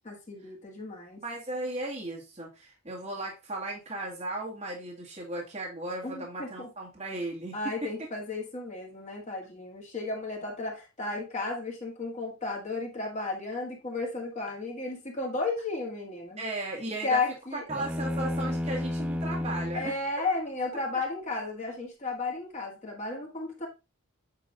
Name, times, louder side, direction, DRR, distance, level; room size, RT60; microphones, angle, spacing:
voice 1, 0.0-1.2 6.0-6.7 7.5-16.4 17.0-17.6 19.7-23.7, left 3 dB, 35° left, -1 dB, 1.9 m, -33 dB
voice 2, 1.2-8.1 16.4-17.2 17.5-20.0, right 2 dB, 35° right, -3 dB, 2.0 m, -36 dB
sound 1, 17.7-20.0, left 1 dB, 5° right, 0.5 m, -31 dB
8.4 x 3.1 x 3.7 m, 0.27 s
head